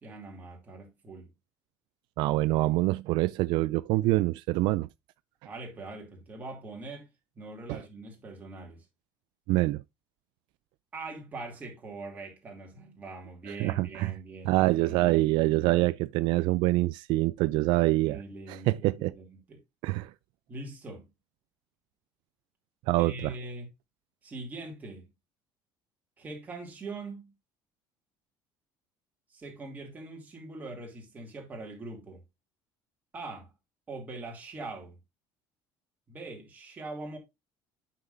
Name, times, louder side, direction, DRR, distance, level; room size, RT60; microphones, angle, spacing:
voice 1, 0.0-1.3 5.4-7.1 7.3-8.8 10.9-15.9 18.0-19.6 20.5-21.1 23.0-23.7 24.2-25.1 26.2-27.3 29.3-32.2 33.1-33.5 33.9-35.0 36.1-37.2, right 2 dB, 20° right, 2.5 m, -42 dB
voice 2, 2.2-4.9 7.7-7.8 9.5-9.8 13.6-14.1 14.4-18.2 18.5-19.1 19.8-20.1 22.9-23.3, right 19 dB, 70° right, 0.3 m, -25 dB
9.1 x 5.8 x 2.5 m
cardioid pair, 165°, 8 cm